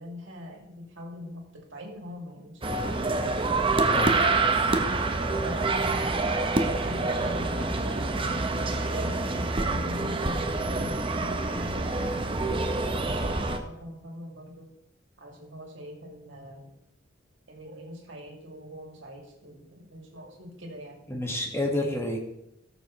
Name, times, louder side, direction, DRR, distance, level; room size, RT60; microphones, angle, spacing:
voice 1, 0.0-2.9 5.4-8.5 8.9-14.7 15.2-16.7 17.5-21.0, left 1 dB, 80° right, 0 dB, 2.6 m, -42 dB
sound 1, 2.6-13.6, right 3 dB, 30° right, 0.8 m, -26 dB
voice 2, 21.1-22.2, left 1 dB, 15° left, 1 dB, 1.7 m, -29 dB
18.0 x 7.0 x 3.1 m, 0.83 s
head